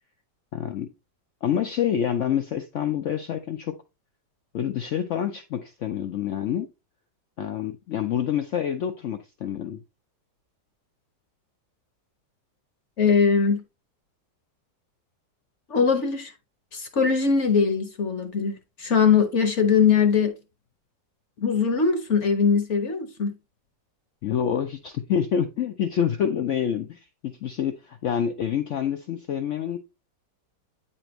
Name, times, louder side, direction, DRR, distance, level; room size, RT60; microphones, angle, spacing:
voice 1, 0.5-0.9 1.4-3.8 4.5-6.7 7.4-9.8 24.2-29.8, left 9 dB, 90° left, 0.6 m, -27 dB
voice 2, 13.0-13.6 15.7-16.3 16.7-20.3 21.4-23.3, left 6 dB, 55° left, 0.9 m, -21 dB
9.0 x 4.3 x 3.0 m
omnidirectional pair, 1.9 m